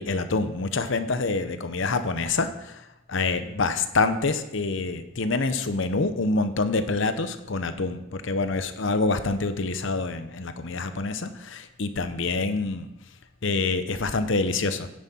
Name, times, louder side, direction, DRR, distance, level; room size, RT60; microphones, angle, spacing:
voice 1, 0.0-12.9 13.4-14.9, left 3 dB, 60° left, 10 dB, 0.8 m, -26 dB
9.9 x 9.1 x 4.4 m, 0.89 s
head